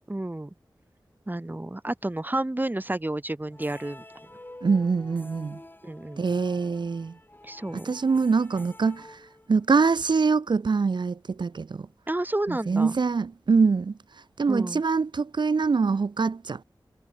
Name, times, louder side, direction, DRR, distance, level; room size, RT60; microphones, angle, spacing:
voice 1, 0.1-0.5 1.3-4.0 5.8-6.2 7.4-7.9 12.1-12.9 14.5-14.8, right 1 dB, 20° right, 1.2 m, -30 dB
sound 1, 3.5-9.8, left 1 dB, 25° left, 6.0 m, -48 dB
voice 2, 4.6-5.6 6.2-7.2 7.7-9.2 9.5-11.9 12.5-14.0 14.4-16.6, right 4 dB, 65° right, 0.6 m, -24 dB
wide cardioid pair, 55°, 8 cm